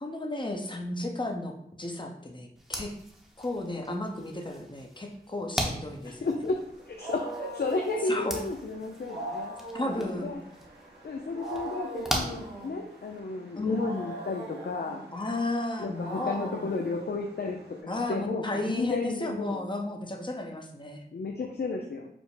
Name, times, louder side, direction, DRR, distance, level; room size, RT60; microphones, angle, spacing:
voice 1, 0.0-2.9 3.4-6.3 8.1-8.4 9.7-10.3 13.6-13.9 15.1-16.7 17.9-21.1, left 2 dB, 30° left, 2 dB, 0.8 m, -33 dB
sound 1, 2.6-13.2, equal, ahead, 0.9 m, -39 dB
voice 2, 6.1-9.5 10.2-10.4 11.0-15.0 15.8-19.6 21.1-22.1, left 3 dB, 70° left, 1 dB, 0.5 m, -33 dB
Wild animals, 6.6-17.8, right 2 dB, 85° right, 0.9 m, -41 dB
5.1 x 2.1 x 4.8 m, 0.73 s
wide cardioid pair, 50°, 17 cm